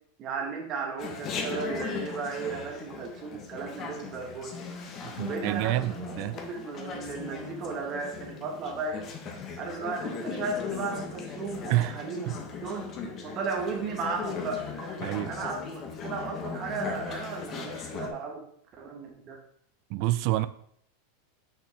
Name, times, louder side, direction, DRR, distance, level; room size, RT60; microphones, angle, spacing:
voice 1, 0.2-4.6 5.2-5.9 6.3-9.1 9.6-12.3 12.6-12.9 13.2-14.9 15.3-18.4 18.8-19.4, right 4 dB, 35° right, 1.3 m, -35 dB
Chatter, 1.0-18.1, left 5 dB, 35° left, 1.0 m, -38 dB
voice 2, 5.2-6.4 11.7-12.0 12.3-12.4 15.0-15.3 19.9-20.5, right 16 dB, 55° right, 0.3 m, -27 dB
6.3 x 5.5 x 3.2 m
supercardioid pair, 130°, 0 cm